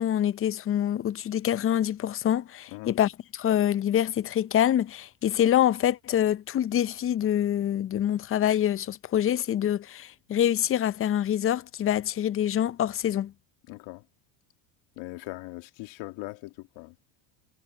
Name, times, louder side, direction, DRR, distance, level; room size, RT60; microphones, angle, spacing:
voice 1, 0.0-13.3, left 10 dB, 25° left, 0.6 m, -25 dB
voice 2, 13.7-14.0 15.0-16.9, left 21 dB, 65° left, 2.6 m, -40 dB
supercardioid pair, 95°, 50 cm